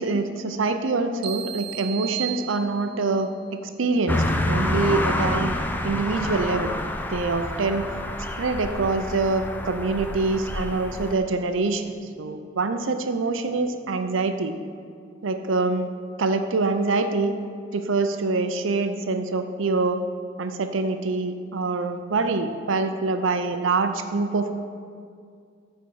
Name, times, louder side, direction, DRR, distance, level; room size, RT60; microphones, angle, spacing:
voice 1, 0.0-5.6 5.8-6.7 7.1-7.9 8.4-14.5 15.2-15.9 16.2-17.3 17.7-20.0 20.4-24.6, right 3 dB, 75° right, 8 dB, 0.6 m, -25 dB
sound 1, 1.2-3.2, right 12 dB, 55° right, 0.9 m, -34 dB
sound 2, 4.1-11.1, left 1 dB, 10° left, 0.4 m, -28 dB
9.6 x 4.5 x 5.4 m, 2.2 s
head